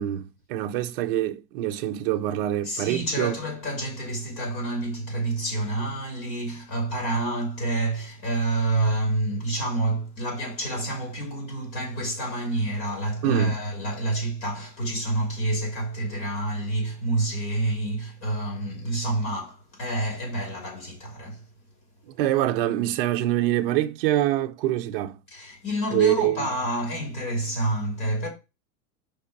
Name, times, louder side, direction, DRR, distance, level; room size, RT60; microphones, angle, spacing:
voice 1, 0.0-3.4 13.2-13.6 22.1-25.2 25.9-26.5, right 13 dB, 35° right, 0.6 m, -25 dB
voice 2, 2.6-21.4 25.3-28.3, right 2 dB, 45° left, 3.2 m, -28 dB
5.3 x 4.3 x 4.9 m
supercardioid pair, 160°, 49 cm